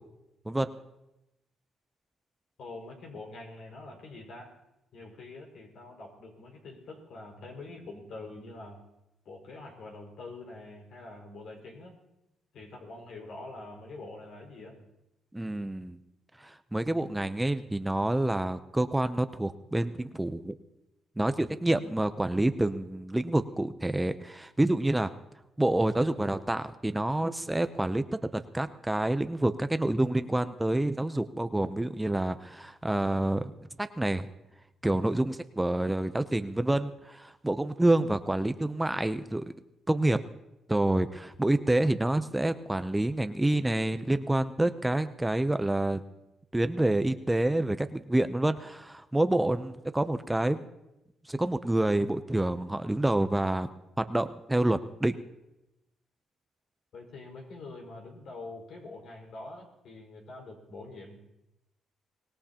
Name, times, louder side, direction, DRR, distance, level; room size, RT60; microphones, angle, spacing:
voice 1, 2.6-4.5 4.9-8.8 9.2-11.9 12.5-14.9 56.9-61.2, left 2 dB, 70° left, 1 dB, 5.1 m, -45 dB
voice 2, 15.3-16.0 16.4-20.5 21.2-25.1 25.6-28.0 28.3-33.5 33.8-34.3 34.8-39.4 39.9-40.2 40.7-46.0 46.5-50.6 51.3-53.7 54.0-55.2, right 1 dB, 10° right, 10 dB, 0.7 m, -28 dB
25.0 x 19.5 x 2.9 m, 0.93 s
cardioid pair, 90°, 0 cm